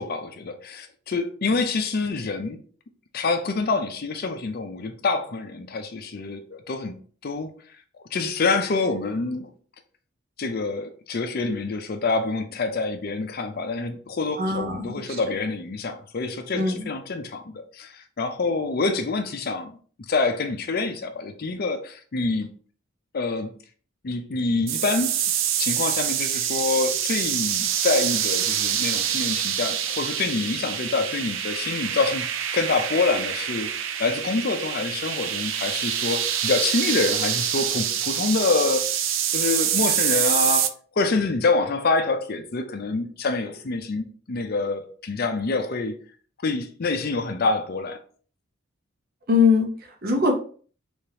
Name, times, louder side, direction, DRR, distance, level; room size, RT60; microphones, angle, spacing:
voice 1, 0.0-2.6 3.1-6.9 7.2-7.5 8.1-9.5 10.4-19.7 20.1-22.5 23.1-23.5 24.0-25.2 25.6-32.3 32.5-38.9 39.3-40.7 41.0-45.9 46.4-48.0, left 3 dB, 50° left, 0.5 m, -26 dB
voice 2, 14.4-15.4 16.5-16.9 49.3-50.3, left 4 dB, 50° right, 0.8 m, -22 dB
sound 1, 24.7-40.7, right 10 dB, 65° right, 0.4 m, -26 dB
3.4 x 3.3 x 2.8 m
head